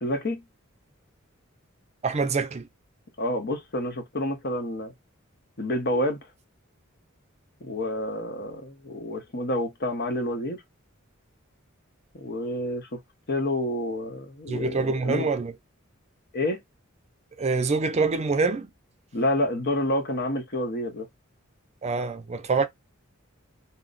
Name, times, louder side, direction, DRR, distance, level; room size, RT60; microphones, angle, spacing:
voice 1, 0.0-0.4 3.2-4.9 5.6-6.2 7.6-10.6 12.1-13.0 13.3-15.3 16.3-16.6 19.1-21.1, left 1 dB, 55° left, 1.0 m, -28 dB
voice 2, 2.0-2.7 14.5-15.5 17.4-18.7 21.8-22.7, right 4 dB, 30° right, 0.5 m, -25 dB
3.0 x 2.1 x 3.8 m
head